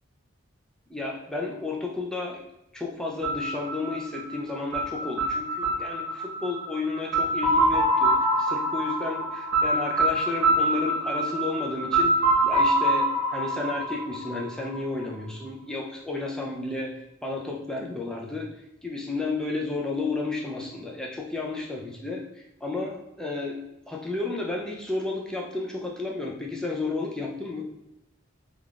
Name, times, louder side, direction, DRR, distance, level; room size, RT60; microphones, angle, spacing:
voice 1, 0.9-2.4 2.7-12.2 12.4-16.9 17.2-18.5 18.8-27.7, left 3 dB, 5° left, -2 dB, 0.3 m, -32 dB
sound 1, 3.2-15.0, right 1 dB, 55° right, 1.1 m, -25 dB
3.4 x 2.4 x 2.3 m, 0.89 s
head